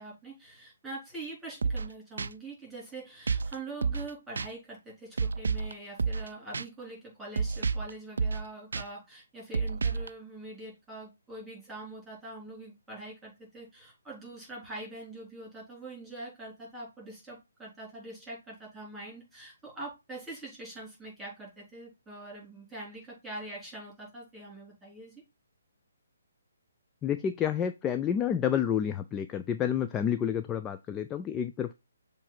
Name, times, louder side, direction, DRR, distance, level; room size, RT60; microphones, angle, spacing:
voice 1, 0.0-25.2, right 2 dB, 5° right, -4 dB, 4.3 m, -44 dB
sound 1, 1.6-1.9 2.2-2.3 3.3-3.5 3.8-4.1 4.4-4.5 5.2-5.7 6.0-6.3 6.5-6.6 7.4-7.9 8.2-8.4 8.7-8.8 9.5-10.1, right 5 dB, 65° right, 0.3 m, -29 dB
voice 2, 27.0-31.7, left 9 dB, 15° left, 9 dB, 0.3 m, -29 dB
7.1 x 3.3 x 4.3 m, 0.24 s
figure-of-eight pair, 135°, 0 cm